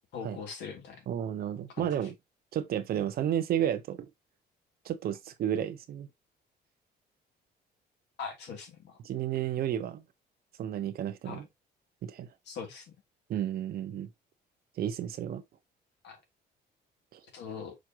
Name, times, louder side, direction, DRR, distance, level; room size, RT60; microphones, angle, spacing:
voice 1, 0.1-1.0 1.8-2.0 8.2-9.0 11.2-11.4 12.5-12.8 16.0-16.2 17.3-17.8, left 6 dB, 80° left, 3.2 m, -41 dB
voice 2, 1.1-2.2 2.5-4.1 4.8-6.1 9.0-10.0 10.6-11.5 12.0-12.3 13.3-14.1 14.8-15.4 17.1-17.2, right 10 dB, 60° right, 1.1 m, -32 dB
6.5 x 5.0 x 3.0 m
cardioid pair, 135°, 18 cm